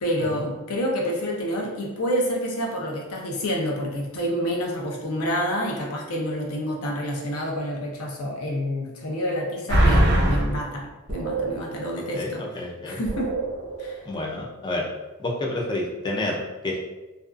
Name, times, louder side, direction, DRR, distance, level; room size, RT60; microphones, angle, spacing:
voice 1, 0.0-12.4 12.9-13.3 13.8-14.0, equal, 70° left, 0 dB, 0.6 m, -28 dB
sound 1, 9.7-10.6 11.1-11.9 12.3-12.4 13.1-13.9 14.3-14.4, right 1 dB, 50° right, 0.5 m, -23 dB
voice 2, 12.1-13.0 14.1-14.9 15.2-16.9, left 2 dB, 20° left, -1 dB, 0.3 m, -29 dB
2.5 x 2.3 x 2.4 m, 1.1 s
head